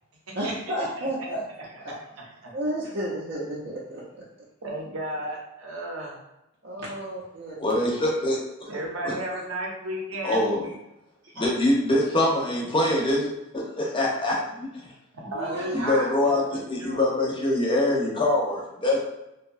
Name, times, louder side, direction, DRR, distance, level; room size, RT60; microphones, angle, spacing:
voice 1, 0.4-1.4 2.5-4.0 6.6-7.6 11.3-11.5 15.3-15.9, right 1 dB, 55° right, -6 dB, 0.5 m, -32 dB
voice 2, 4.6-6.2 8.7-10.4 15.1-17.0, right 1 dB, 85° right, -2 dB, 0.7 m, -33 dB
voice 3, 7.6-8.7 9.0-9.1 10.2-10.7 11.4-14.7 15.7-19.0, left 1 dB, 25° left, -3 dB, 0.6 m, -24 dB
2.7 x 2.2 x 2.5 m, 0.89 s
head